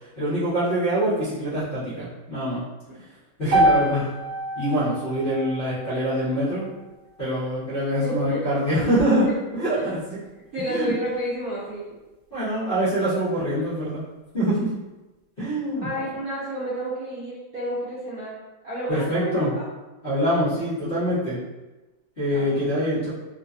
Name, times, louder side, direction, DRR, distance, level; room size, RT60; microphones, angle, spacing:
voice 1, 0.2-2.6 3.4-4.1 4.5-6.7 7.2-9.3 9.5-10.2 10.7-10.9 12.3-14.0 14.3-14.7 15.4-15.9 18.9-19.5 20.0-21.4 22.2-23.1, equal, 40° left, -12 dB, 0.8 m, -24 dB
sound 1, 3.5-7.7, right 1 dB, 80° right, 1.3 m, -26 dB
voice 2, 8.0-8.8 9.3-9.4 10.5-11.9 15.8-18.4 18.6-19.7 22.3-22.5, right 1 dB, 65° right, -8 dB, 1.0 m, -30 dB
3.1 x 2.2 x 2.5 m, 1.1 s
omnidirectional pair, 2.1 m